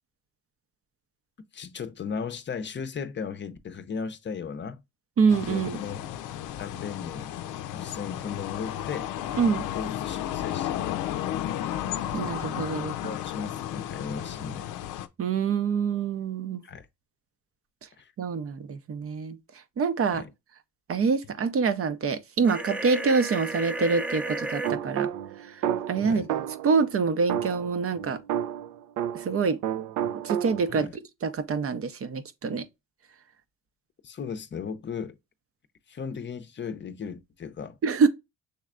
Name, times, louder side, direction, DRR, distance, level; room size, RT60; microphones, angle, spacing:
voice 1, 1.5-4.8 5.5-6.0 6.6-7.3 7.7-9.1 9.7-10.8 13.0-14.7 16.6-16.9 18.0-18.1 20.1-20.3 26.0-26.3 30.7-30.9 34.0-35.2 35.9-37.8, left 6 dB, 40° left, 0.6 m, -36 dB
voice 2, 5.2-5.8 9.4-9.6 12.1-12.9 15.2-16.6 18.2-19.4 19.8-20.2 20.9-25.1 25.4-26.2 26.6-28.2 29.1-29.6 30.2-30.9 31.2-32.7 37.8-38.1, right 5 dB, 50° right, 0.7 m, -26 dB
sound 1, 5.3-15.1, left 11 dB, 85° left, 0.5 m, -33 dB
sound 2, 22.4-24.7, right 2 dB, 5° right, 0.6 m, -33 dB
sound 3, 24.6-26.8 27.3-29.4 29.6-30.8, right 10 dB, 85° right, 0.5 m, -31 dB
6.6 x 3.2 x 2.4 m
cardioid pair, 90°, 30 cm